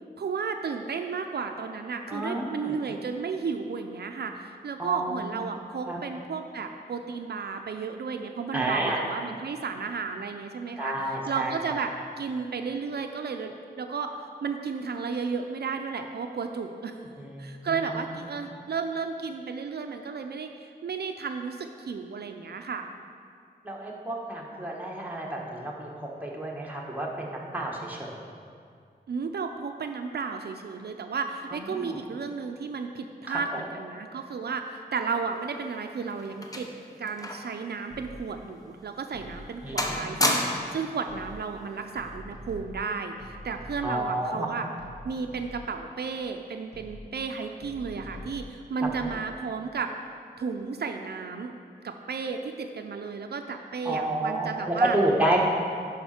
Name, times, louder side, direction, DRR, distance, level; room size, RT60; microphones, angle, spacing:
voice 1, 0.2-10.9 11.3-11.9 12.2-14.1 14.4-17.1 17.4-20.5 20.8-22.8 29.1-36.7 37.0-44.7 45.0-49.9 50.4-51.5 51.8-55.0, right 5 dB, 75° right, 5 dB, 0.5 m, -33 dB
voice 2, 2.1-2.8 4.8-5.2 5.9-6.0 8.5-9.0 10.8-11.9 17.2-17.9 23.6-28.2 31.5-31.8 33.3-33.4 39.6-40.1 43.8-44.5 53.8-55.4, right 1 dB, 10° right, -2 dB, 1.2 m, -30 dB
sound 1, 35.5-37.6 37.9-38.0 38.7-38.8 39.2-39.5 39.8-40.8 41.8-42.1, left 1 dB, 20° left, 0.8 m, -30 dB
sound 2, 37.9-38.4 39.1-40.2 41.1-41.6 42.0-44.1 44.8-45.8 46.7-47.2 47.6-49.1, left 1 dB, 80° left, 1.6 m, -45 dB
11.0 x 5.0 x 4.3 m, 2.3 s
wide cardioid pair, 120°, 17 cm